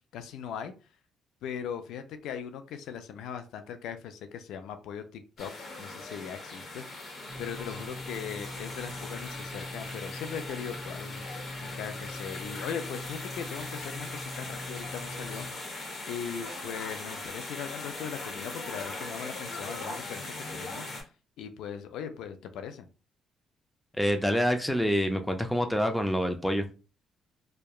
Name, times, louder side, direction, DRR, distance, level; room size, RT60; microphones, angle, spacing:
voice 1, 0.1-0.7 1.4-5.5 5.8-6.8 7.4-11.2 11.6-15.5 16.1-20.9 21.4-22.9, left 8 dB, 85° left, 0.3 m, -39 dB
sound 1, 5.4-21.0, left 2 dB, 50° left, 1.0 m, -40 dB
sound 2, 7.3-15.5, left 1 dB, 40° right, 0.6 m, -43 dB
voice 2, 24.0-26.6, equal, 5° left, 0.4 m, -26 dB
2.7 x 2.2 x 2.3 m
cardioid pair, 90°, 0 cm